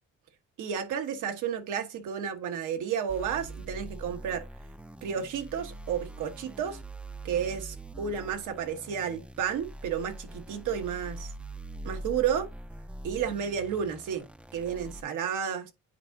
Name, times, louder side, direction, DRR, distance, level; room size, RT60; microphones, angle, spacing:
voice 1, 0.6-4.4 5.0-6.8 7.2-11.3 11.8-12.5 13.0-14.3 14.5-15.7, right 8 dB, 85° right, 1.3 m, -32 dB
sound 1, 3.1-15.0, right 1 dB, 5° right, 0.4 m, -43 dB
9.1 x 4.6 x 2.7 m
cardioid pair, 90°, 30 cm